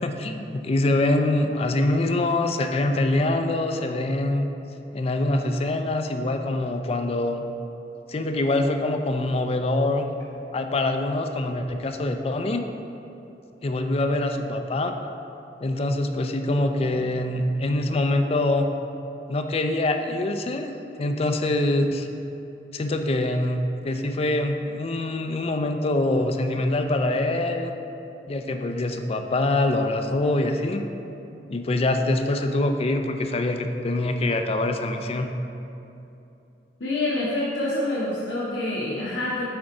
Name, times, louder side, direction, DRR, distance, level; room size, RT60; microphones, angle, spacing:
voice 1, 0.0-4.5 4.9-7.5 8.1-10.1 10.5-12.6 13.6-15.0 15.6-18.7 19.3-20.7 21.0-22.1 22.7-27.7 28.3-30.9 31.5-35.3, left 2 dB, 35° left, 6 dB, 0.4 m, -24 dB
voice 2, 36.8-39.5, left 2 dB, 85° left, -6 dB, 0.8 m, -27 dB
7.9 x 3.8 x 4.7 m, 2.8 s
head